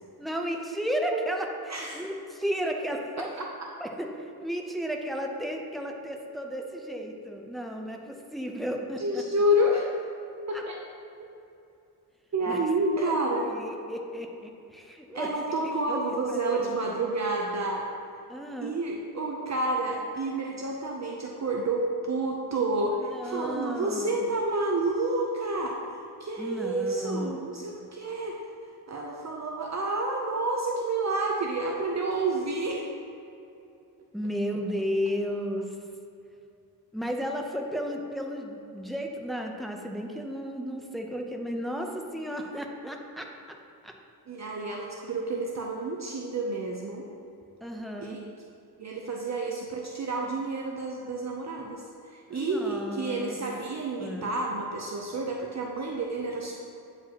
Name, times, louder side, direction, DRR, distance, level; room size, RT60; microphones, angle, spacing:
voice 1, 0.2-3.3 3.8-9.2 10.5-10.6 12.5-12.6 13.0-13.1 13.5-15.3 15.6-16.8 18.3-18.8 23.1-24.1 26.4-27.5 34.1-35.8 36.9-43.6 43.8-43.9 47.6-48.2 52.3-53.4 54.0-54.3, equal, ahead, 2 dB, 0.5 m, -34 dB
voice 2, 1.7-2.0 9.0-9.9 10.5-10.8 11.2-11.3 12.3-13.5 15.1-17.9 18.6-25.8 26.2-28.4 28.9-32.9 44.3-47.1 48.0-48.2 48.8-56.5, right 2 dB, 45° right, -1 dB, 0.6 m, -29 dB
9.0 x 4.9 x 2.9 m, 2.7 s
wide cardioid pair, 100°, 38 cm